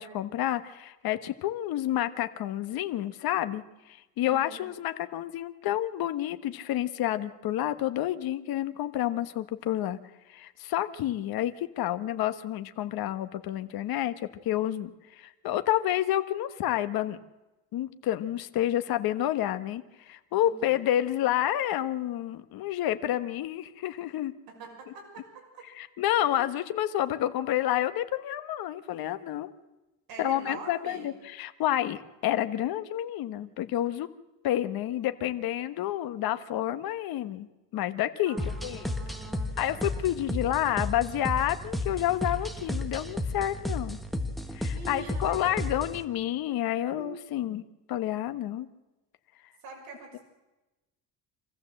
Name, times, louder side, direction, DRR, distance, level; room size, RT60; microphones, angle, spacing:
voice 1, 0.0-10.0 10.3-14.1 14.4-17.2 17.7-24.3 25.7-29.5 30.2-34.1 34.4-37.5 37.7-39.0 39.6-44.0 44.5-47.6 47.9-48.7, left 12 dB, 60° left, 10 dB, 1.3 m, -29 dB
voice 2, 4.2-4.6 20.4-20.8 24.5-25.6 26.3-26.4 30.1-31.1 38.2-40.0 44.7-45.9 47.0-47.1 49.6-50.2, right 4 dB, 60° right, -1 dB, 6.4 m, -45 dB
sound 1, 38.4-46.0, left 1 dB, ahead, 1.3 m, -33 dB
26.0 x 15.0 x 7.8 m, 1.1 s
cardioid pair, 150°, 40 cm